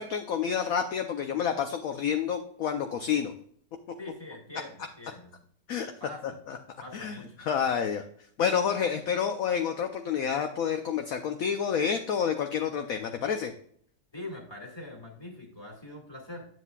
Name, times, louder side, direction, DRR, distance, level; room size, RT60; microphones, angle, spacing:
voice 1, 0.0-3.3 5.7-5.9 6.5-6.6 6.9-8.0 8.4-13.5, left 7 dB, 65° left, 6 dB, 1.0 m, -29 dB
voice 2, 4.0-5.4 6.0-6.4 6.8-7.5 14.1-16.5, left 1 dB, 15° left, 0 dB, 2.0 m, -43 dB
9.6 x 7.8 x 2.3 m, 0.62 s
omnidirectional pair, 1.9 m